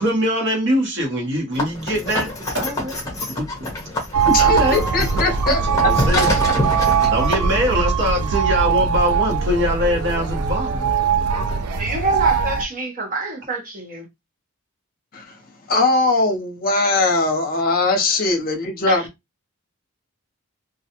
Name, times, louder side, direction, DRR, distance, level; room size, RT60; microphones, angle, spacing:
voice 1, 0.0-2.3 2.5-2.9 3.4-3.5 4.4-4.8 5.8-6.3 7.1-11.3, equal, 55° right, 1.0 m, -22 dB
sound 1, 1.5-7.6, left 1 dB, 15° left, 0.9 m, -26 dB
sound 2, 4.1-12.6, right 6 dB, 85° right, 0.4 m, -21 dB
voice 2, 4.3-5.9 15.1-15.2 15.7-19.0, left 3 dB, 40° left, 0.7 m, -20 dB
voice 3, 11.7-14.1 18.1-18.2 18.9-19.1, right 2 dB, 35° right, 0.7 m, -26 dB
2.3 x 2.2 x 2.8 m
head